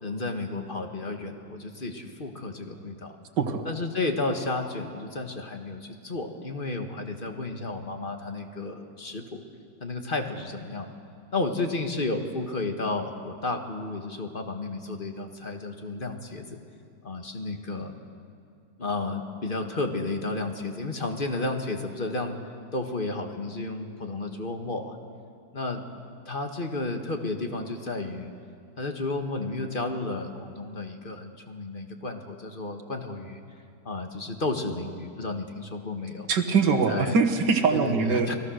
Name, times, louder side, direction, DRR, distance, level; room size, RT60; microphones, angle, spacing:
voice 1, 0.0-3.1 3.7-9.4 9.8-10.9 11.3-16.6 17.0-17.9 18.8-22.4 22.7-25.0 25.5-25.8 26.3-28.3 28.8-33.4 33.9-36.3 36.9-37.2 37.7-38.3, left 2 dB, 30° left, 4 dB, 1.8 m, -32 dB
voice 2, 36.3-38.3, right 5 dB, 80° right, 6 dB, 2.1 m, -23 dB
28.5 x 20.5 x 6.5 m, 2.3 s
omnidirectional pair, 1.8 m